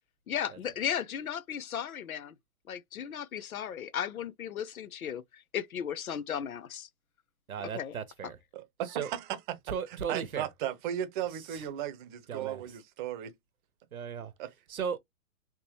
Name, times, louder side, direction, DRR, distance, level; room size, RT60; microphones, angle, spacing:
voice 1, 0.3-2.3 2.7-6.9 7.7-7.9, left 9 dB, 85° left, 0.7 m, -35 dB
voice 2, 7.5-8.4 8.8-9.1 9.7-10.5 11.4-11.6 12.3-12.6 13.9-14.3 14.7-15.0, right 7 dB, 85° right, 1.0 m, -36 dB
voice 3, 8.5-9.4 9.7-9.8 10.1-13.3 14.4-14.5, right 11 dB, 35° right, 0.7 m, -36 dB
3.6 x 2.9 x 3.0 m
hypercardioid pair, 120°, 42 cm